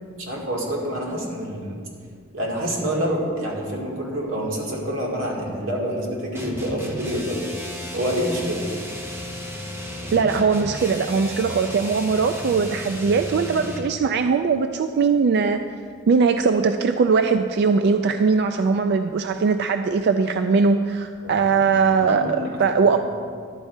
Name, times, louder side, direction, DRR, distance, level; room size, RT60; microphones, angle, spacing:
voice 1, 0.2-1.8 2.3-7.4 7.9-8.6 21.2-22.5 22.8-23.0, equal, 85° right, -3 dB, 2.1 m, -27 dB
sound 1, 6.3-14.0, equal, 10° right, 1.0 m, -34 dB
voice 2, 10.1-15.6 16.1-23.1, right 5 dB, 55° right, 8 dB, 0.3 m, -20 dB
11.5 x 4.4 x 8.1 m, 2.2 s
head